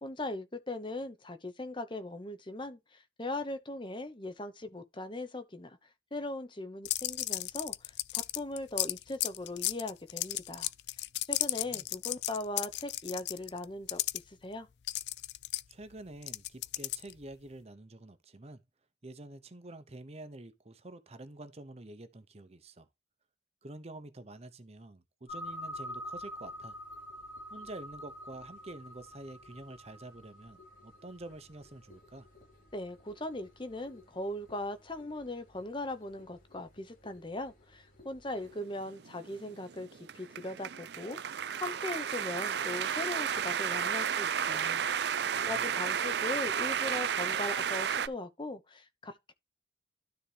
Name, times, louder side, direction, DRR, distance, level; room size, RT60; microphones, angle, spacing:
voice 1, 0.0-5.8 6.1-10.7 11.3-14.0 14.3-14.7 32.7-39.9 40.1-45.1 45.4-49.3, left 2 dB, 25° left, 1.0 m, -39 dB
sound 1, 6.9-14.2 14.9-17.2, left 16 dB, 70° left, 0.4 m, -34 dB
voice 2, 15.7-18.6 19.0-22.9 23.6-26.8 27.5-32.3 45.3-45.6, right 2 dB, 35° right, 0.8 m, -48 dB
sound 2, 25.3-38.5, left 1 dB, 50° left, 4.4 m, -48 dB
sound 3, 38.8-48.1, right 8 dB, 65° right, 0.5 m, -32 dB
12.5 x 4.2 x 3.3 m
head